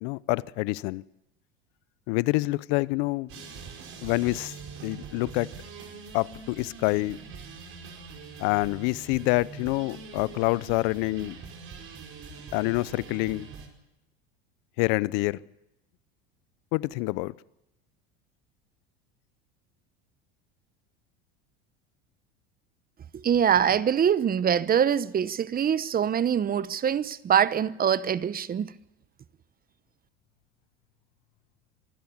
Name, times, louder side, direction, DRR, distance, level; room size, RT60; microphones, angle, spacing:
voice 1, 0.0-1.0 2.1-3.5 4.0-4.5 4.8-5.5 6.1-7.2 8.4-11.4 12.5-13.5 14.8-15.4 16.7-17.3, left 22 dB, 65° left, 0.8 m, -27 dB
sound 1, 3.3-13.7, right 5 dB, 45° right, 5.1 m, -43 dB
voice 2, 23.1-28.7, right 8 dB, 30° right, 0.9 m, -24 dB
25.5 x 12.5 x 9.5 m
supercardioid pair, 95°, 30 cm